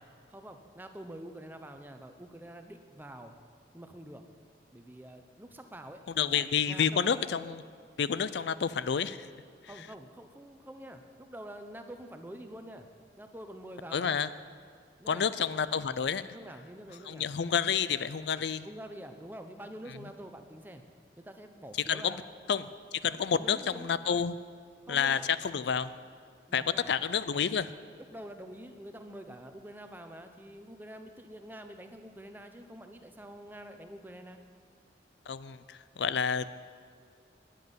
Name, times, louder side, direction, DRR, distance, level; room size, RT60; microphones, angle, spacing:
voice 1, 0.3-3.3 3.7-4.2 4.7-7.3 9.7-12.9 13.2-14.2 15.0-15.3 16.3-17.3 18.6-20.8 21.2-22.3 23.3-24.0 24.9-25.3 26.5-26.9 28.1-34.4, right 1 dB, 10° right, 6 dB, 0.8 m, -46 dB
voice 2, 6.2-7.6 8.0-9.3 13.9-14.3 15.1-16.2 17.1-18.7 21.9-22.2 22.5-22.7 23.0-24.4 24.9-25.9 26.5-27.7 35.3-36.6, left 7 dB, 75° left, 15 dB, 0.4 m, -29 dB
10.0 x 9.3 x 9.4 m, 2.2 s
head